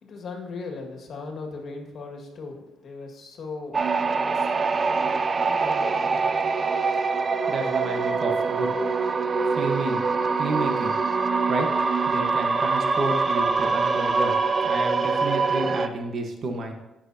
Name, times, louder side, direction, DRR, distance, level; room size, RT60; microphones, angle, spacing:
voice 1, 0.0-4.6 4.8-6.3, left 4 dB, 60° left, 2 dB, 1.9 m, -39 dB
sound 1, 3.7-15.9, right 4 dB, 35° right, 0.5 m, -24 dB
voice 2, 7.5-8.7 9.5-10.0 10.4-10.9 11.5-11.7 12.1-14.3 14.6-16.7, right 2 dB, 55° right, 4 dB, 1.3 m, -30 dB
16.0 x 6.1 x 2.8 m, 0.98 s
cardioid pair, 90°, 0 cm